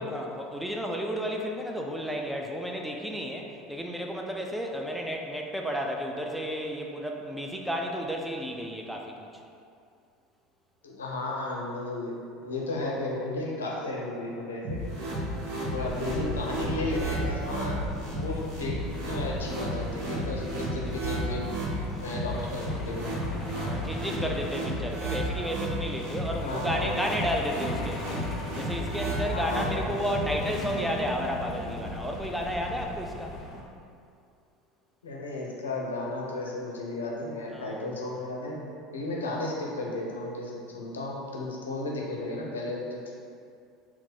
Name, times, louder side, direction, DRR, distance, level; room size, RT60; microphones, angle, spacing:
voice 1, 0.0-9.3 23.6-28.3 28.5-33.4 37.5-37.9, equal, 5° right, 1 dB, 0.4 m, -32 dB
voice 2, 10.8-14.8 15.7-17.8 18.1-21.5 22.0-23.2 26.4-27.0 29.3-30.4 35.0-42.8, left 2 dB, 75° left, -3 dB, 0.6 m, -34 dB
sound 1, 14.6-30.6, right 1 dB, 55° right, 0.9 m, -33 dB
Truck, 15.8-33.6, left 2 dB, 30° left, 0.7 m, -39 dB
4.1 x 2.1 x 4.1 m, 2.4 s
figure-of-eight pair, 70°, 0 cm